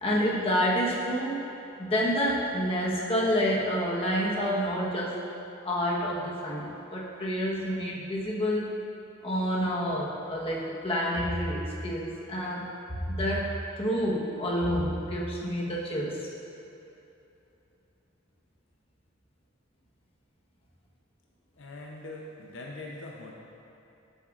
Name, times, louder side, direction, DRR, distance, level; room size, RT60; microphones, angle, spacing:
voice 1, 0.0-1.4 1.8-5.2 5.6-8.7 9.2-12.7 13.1-16.3, equal, 30° left, -4 dB, 1.2 m, -28 dB
voice 2, 21.6-23.3, left 2 dB, 70° left, -1 dB, 0.7 m, -42 dB
13.0 x 7.1 x 2.5 m, 2.9 s
head